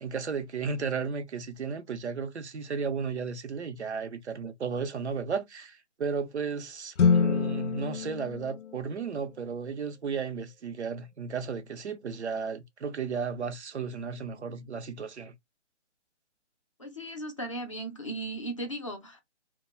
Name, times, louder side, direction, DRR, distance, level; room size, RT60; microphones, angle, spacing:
voice 1, 0.0-15.3, right 5 dB, 70° right, 0.7 m, -34 dB
sound 1, 7.0-9.4, left 6 dB, 85° left, 0.5 m, -27 dB
voice 2, 16.8-19.2, right 1 dB, 30° left, 0.4 m, -36 dB
2.3 x 2.2 x 3.0 m
figure-of-eight pair, 145°, 35 cm